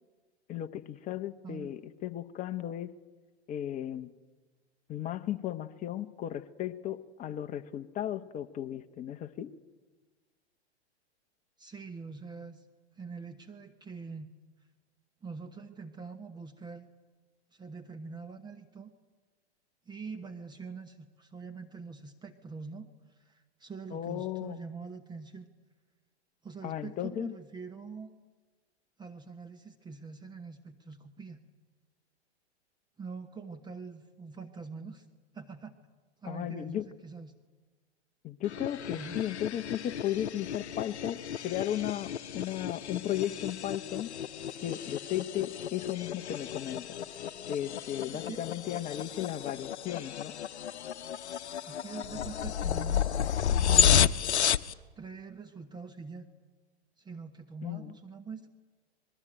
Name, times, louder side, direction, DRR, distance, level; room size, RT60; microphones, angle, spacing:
voice 1, 0.5-2.9 3.5-4.1 4.9-9.5 23.9-24.6 26.6-27.3 36.2-36.9 38.2-44.1 44.6-47.0 47.5-50.4 57.6-57.9, left 11 dB, 20° left, 10 dB, 1.1 m, -35 dB
voice 2, 11.6-12.6 12.9-14.4 15.2-16.9 17.5-18.9 19.9-25.5 26.4-28.1 29.0-31.4 33.0-35.1 35.3-35.7 36.2-37.3 38.9-39.2 48.1-48.4 51.2-51.3 51.6-54.1 55.0-56.3 57.0-58.5, right 4 dB, 10° right, 6 dB, 1.2 m, -44 dB
sound 1, 38.4-54.7, left 9 dB, 75° left, 0.9 m, -32 dB
26.0 x 21.0 x 9.0 m, 1.3 s
hypercardioid pair, 120°, 34 cm